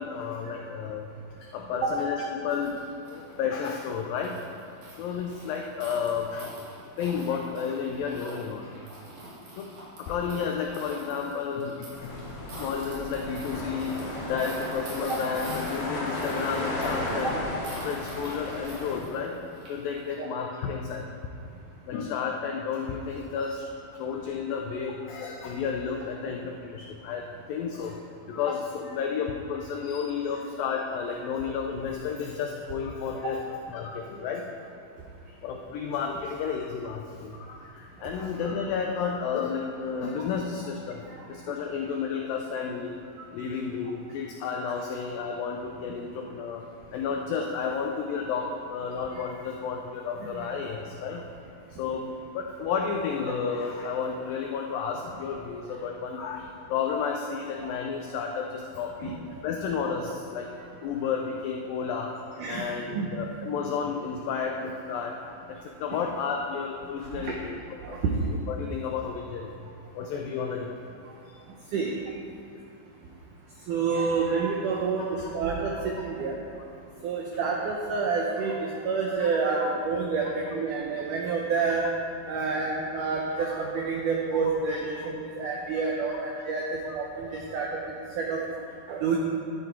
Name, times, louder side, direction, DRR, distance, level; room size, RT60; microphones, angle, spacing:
voice 1, 0.0-2.8 3.0-4.4 4.9-6.5 7.0-8.7 9.6-9.7 10.0-12.3 12.6-17.4 17.8-19.4 19.7-21.3 21.9-28.0 28.3-33.4 33.7-34.5 35.4-41.0 41.3-43.0 43.3-46.7 46.9-51.3 51.8-59.2 59.4-60.5 60.8-62.2 62.5-65.2 65.5-67.6 67.9-71.0 75.2-75.3 78.7-78.8 79.2-79.3 79.6-79.7 80.2-80.3 84.7-84.8 87.3-87.4, left 6 dB, 85° left, 2 dB, 2.0 m, -32 dB
sound 1, 2.5-20.1, right 1 dB, 55° right, 4.0 m, -46 dB
sound 2, 11.9-19.0, left 1 dB, 55° left, 3.3 m, -34 dB
voice 2, 62.4-63.1 67.1-67.4 67.8-68.1 71.0-71.2 71.7-71.9 73.7-76.4 77.0-81.9 82.3-88.4 88.9-89.2, right 4 dB, 90° right, -1 dB, 1.8 m, -29 dB
12.5 x 9.8 x 4.5 m, 2.7 s
omnidirectional pair, 4.9 m